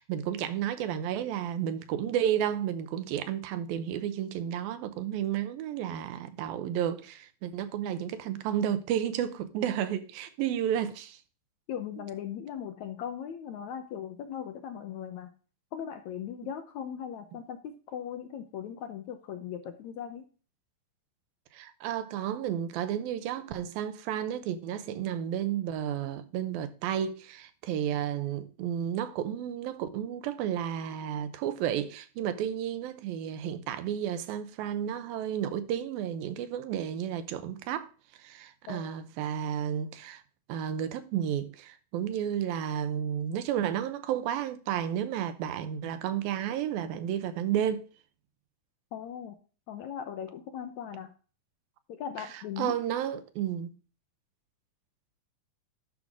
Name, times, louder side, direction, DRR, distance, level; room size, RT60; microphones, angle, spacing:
voice 1, 0.0-11.2 21.5-37.9 38.2-40.2 40.5-47.9 52.6-53.7, right 10 dB, 85° right, 2.7 m, -32 dB
voice 2, 11.7-15.3 15.7-20.2 38.7-39.0 48.9-49.4 49.7-51.1 51.9-52.8, left 9 dB, 70° left, 1.8 m, -39 dB
10.0 x 6.4 x 3.6 m
omnidirectional pair, 4.1 m